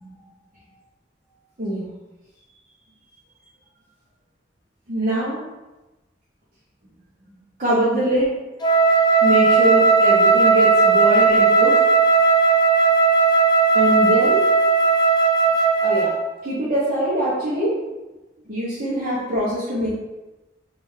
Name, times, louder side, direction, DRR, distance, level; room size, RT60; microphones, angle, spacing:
voice 1, 1.6-1.9 4.9-5.4 7.6-8.3 9.2-11.8 13.7-14.5 15.8-16.1 16.4-17.8 18.5-19.9, right 1 dB, 45° right, -9 dB, 0.9 m, -23 dB
Wind instrument woodwind instrument, 8.6-16.3, right 4 dB, 25° left, 0.5 m, -16 dB
3.4 x 3.3 x 3.2 m, 1.1 s
head